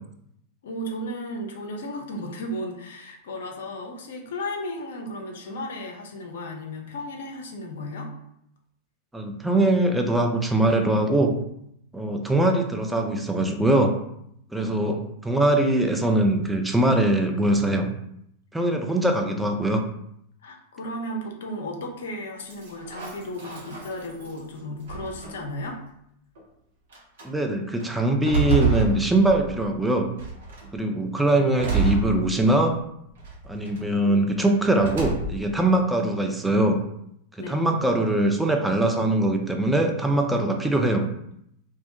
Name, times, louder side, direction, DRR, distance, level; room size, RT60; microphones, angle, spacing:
voice 1, 0.6-8.1 14.6-14.7 20.4-25.8 37.4-37.7, left 1 dB, 60° left, 2 dB, 0.5 m, -34 dB
voice 2, 9.1-11.3 11.9-13.9 14.5-15.0 15.2-17.9 18.5-19.8 27.2-30.1 30.7-32.7 33.5-36.8 37.3-41.1, right 1 dB, 5° right, 3 dB, 0.3 m, -22 dB
sound 1, 22.5-24.4 24.9-25.6 26.4-26.5 26.9-27.3 27.8-29.7 30.2-30.7 31.6-32.7 33.2-33.8 34.7-35.6, right 4 dB, 60° right, 0.6 m, -28 dB
2.2 x 2.1 x 2.7 m, 0.75 s
figure-of-eight pair, 90°, 0 cm